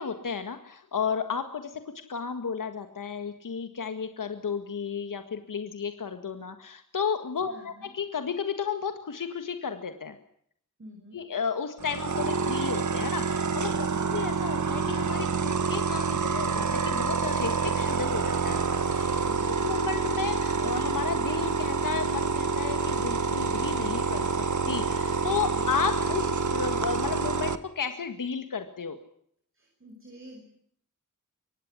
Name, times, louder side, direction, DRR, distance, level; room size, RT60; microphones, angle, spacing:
voice 1, 0.0-1.8 2.1-10.1 11.1-19.1 19.4-24.3 24.7-29.0, left 6 dB, 75° left, 7 dB, 1.9 m, -33 dB
voice 2, 7.5-7.9 10.8-11.2 13.9-14.1 19.2-19.5 25.5-25.6 29.8-30.4, equal, 40° right, 0 dB, 6.9 m, -47 dB
sound 1, 11.8-27.5, right 4 dB, 60° right, 1.5 m, -27 dB
24.5 x 19.0 x 9.8 m, 0.67 s
wide cardioid pair, 120°, 33 cm